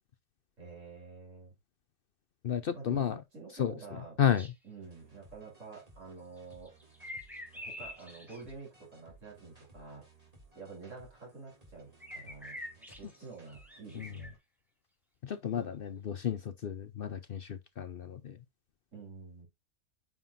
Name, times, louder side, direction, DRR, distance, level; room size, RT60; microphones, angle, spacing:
voice 1, 0.6-1.5 2.7-4.2 4.6-6.7 7.5-10.0 10.5-12.6 13.0-14.3 18.9-19.5, right 4 dB, 60° right, 4.2 m, -48 dB
voice 2, 2.4-3.2 3.5-4.5 14.0-14.1 15.2-18.4, left 8 dB, 55° left, 0.7 m, -32 dB
sound 1, 4.3-4.5 6.4-8.5 12.0-14.3, left 1 dB, ahead, 2.4 m, -45 dB
sound 2, 4.8-14.4, right 2 dB, 25° right, 3.1 m, -60 dB
9.1 x 5.8 x 2.6 m
omnidirectional pair, 1.4 m